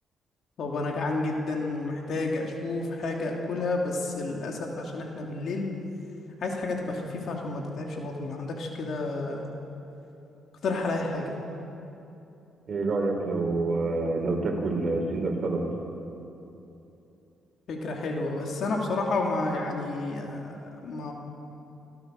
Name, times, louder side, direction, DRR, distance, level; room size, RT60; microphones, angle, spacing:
voice 1, 0.6-5.6 6.4-9.5 10.6-11.3 17.7-21.1, left 3 dB, 65° left, 0 dB, 3.0 m, -30 dB
voice 2, 12.7-15.6, right 3 dB, 45° right, 1 dB, 4.7 m, -27 dB
26.5 x 16.5 x 6.6 m, 2.9 s
cardioid pair, 90°, 0 cm